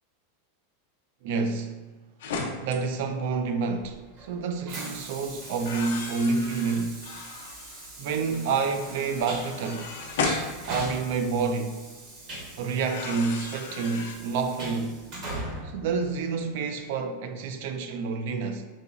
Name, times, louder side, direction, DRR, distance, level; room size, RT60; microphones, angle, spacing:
voice 1, 1.2-1.8 2.6-7.0 8.0-10.0 10.7-11.8 12.6-15.1 15.7-18.7, right 4 dB, 60° right, 0.3 m, -28 dB
sound 1, 2.2-2.8 3.7-3.9 5.5-7.9 8.3-11.3 12.7-14.1, left 4 dB, 80° left, 0.5 m, -35 dB
Train, 3.5-16.7, right 1 dB, 40° right, 0.9 m, -41 dB
3.8 x 2.9 x 2.4 m
supercardioid pair, 160°, 0 cm